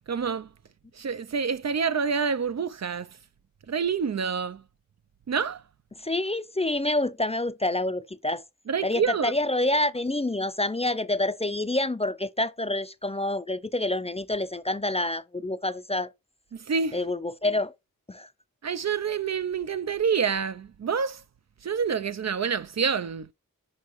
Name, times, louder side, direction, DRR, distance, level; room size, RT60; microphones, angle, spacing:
voice 1, 0.1-0.5 0.9-3.2 3.7-4.6 5.3-5.6 8.7-9.3 16.5-17.0 18.6-21.2 21.6-23.3, right 6 dB, 50° right, 0.4 m, -27 dB
voice 2, 6.0-8.4 8.8-16.1 16.9-17.7 18.1-18.3, left 2 dB, 20° left, 0.4 m, -27 dB
6.4 x 5.1 x 3.0 m
wide cardioid pair, 55°, 34 cm